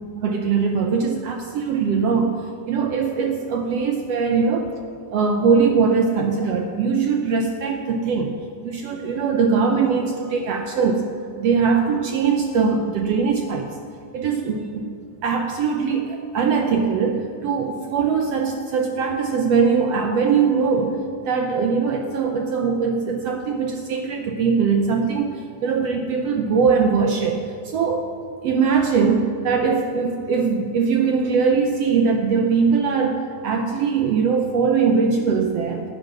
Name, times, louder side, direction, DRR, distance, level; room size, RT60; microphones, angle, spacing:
voice 1, 0.1-2.4 2.7-4.7 5.1-8.4 8.6-11.0 11.4-13.8 14.1-14.9 15.2-21.0 21.2-28.1 28.4-35.8, right 5 dB, 75° right, 4 dB, 1.5 m, -21 dB
15.0 x 9.1 x 6.1 m, 2.2 s
omnidirectional pair, 3.7 m